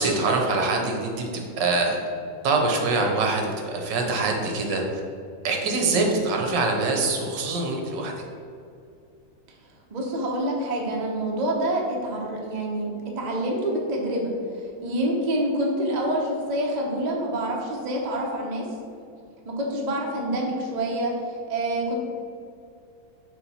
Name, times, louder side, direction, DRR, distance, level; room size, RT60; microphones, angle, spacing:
voice 1, 0.0-2.0 2.4-5.0 5.4-8.1, right 3 dB, 70° right, 1 dB, 1.4 m, -24 dB
voice 2, 9.9-18.7 19.4-22.0, right 1 dB, 50° right, -1 dB, 0.5 m, -27 dB
6.4 x 3.1 x 5.6 m, 2.4 s
omnidirectional pair, 2.2 m